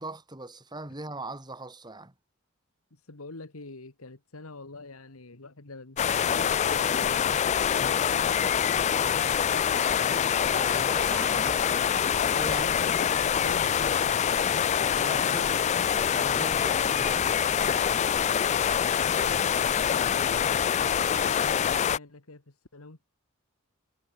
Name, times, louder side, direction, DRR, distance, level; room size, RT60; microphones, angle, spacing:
voice 1, 0.0-2.1 10.4-11.5 12.3-12.7 14.8-15.5 15.9-17.4, right 2 dB, 20° right, 2.9 m, -40 dB
voice 2, 2.9-10.1 12.5-14.6 15.0-15.4 18.9-23.0, left 3 dB, 90° left, 2.0 m, -45 dB
sound 1, 6.0-22.0, left 8 dB, 30° left, 0.3 m, -25 dB
sound 2, 11.1-13.6, equal, 5° right, 5.3 m, -44 dB
head